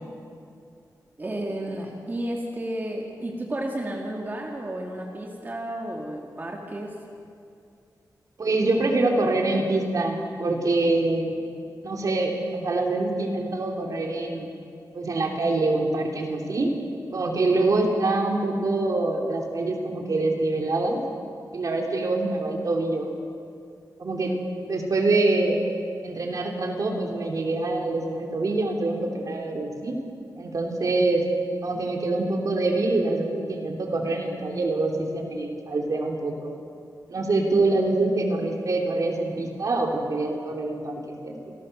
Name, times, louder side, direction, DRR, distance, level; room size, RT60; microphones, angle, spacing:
voice 1, 1.2-7.0 24.2-24.4, right 1 dB, 25° right, -1 dB, 2.1 m, -32 dB
voice 2, 8.4-11.4 11.8-14.5 14.9-16.7 17.1-21.0 21.5-23.1 24.0-24.3 24.7-25.6 26.0-30.0 30.4-31.2 31.6-36.6 37.1-41.5, right 2 dB, 55° right, 1 dB, 2.9 m, -25 dB
28.0 x 17.0 x 6.6 m, 2.4 s
wide cardioid pair, 160°, 7 cm